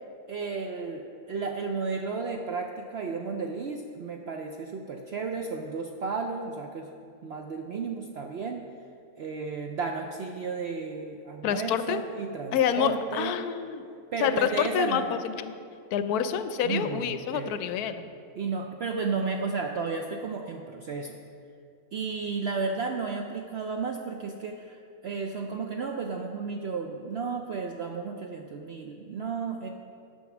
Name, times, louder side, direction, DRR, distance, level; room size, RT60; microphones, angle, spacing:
voice 1, 0.3-6.9 7.2-8.6 9.2-13.4 14.1-15.1 16.6-17.6 18.3-21.2 21.9-29.7, right 4 dB, 65° right, 3 dB, 0.6 m, -33 dB
voice 2, 11.4-12.0 12.5-13.8 14.2-15.5 15.9-18.0, left 8 dB, 80° left, 10 dB, 1.1 m, -27 dB
9.2 x 6.2 x 5.9 m, 2.4 s
omnidirectional pair, 1.6 m